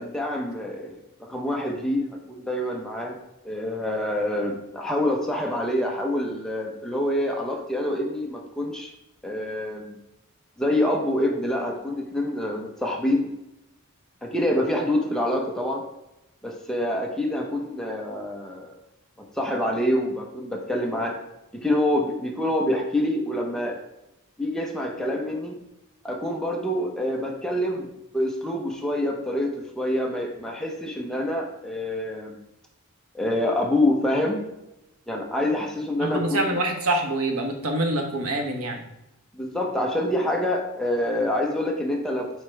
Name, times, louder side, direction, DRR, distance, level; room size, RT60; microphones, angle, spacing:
voice 1, 0.0-3.1 3.4-8.9 9.2-10.0 10.6-13.3 14.2-15.8 16.4-18.7 19.3-21.2 21.6-23.8 24.4-25.6 26.0-27.9 28.1-29.5 29.8-32.4 33.1-34.4 35.1-36.5 39.3-42.3, left 1 dB, 5° left, 0 dB, 1.0 m, -26 dB
voice 2, 36.0-38.8, right 1 dB, 85° right, 3 dB, 1.3 m, -25 dB
8.0 x 5.1 x 3.4 m, 0.91 s
head